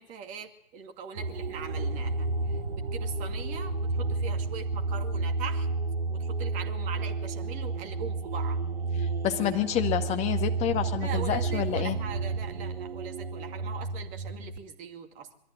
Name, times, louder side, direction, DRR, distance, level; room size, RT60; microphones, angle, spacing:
voice 1, 0.0-5.7 6.1-8.6 11.0-15.3, right 7 dB, 25° right, 4 dB, 2.4 m, -41 dB
sound 1, 1.2-14.6, right 3 dB, 75° right, 2.4 m, -31 dB
voice 2, 9.2-12.0, left 11 dB, 20° left, 6 dB, 1.9 m, -28 dB
22.5 x 14.5 x 9.7 m, 0.75 s
hypercardioid pair, 135°, 33 cm